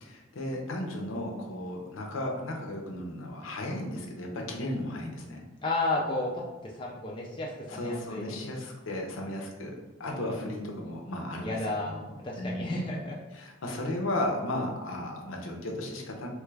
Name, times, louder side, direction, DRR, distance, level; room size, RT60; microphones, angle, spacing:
voice 1, 0.0-5.4 7.7-12.8 13.3-16.3, left 1 dB, 75° left, 1 dB, 0.6 m, -35 dB
voice 2, 5.6-8.4 10.1-10.5 11.4-11.9 12.2-13.2, left 2 dB, 25° left, -3 dB, 0.3 m, -32 dB
3.1 x 2.3 x 3.2 m, 1.2 s
head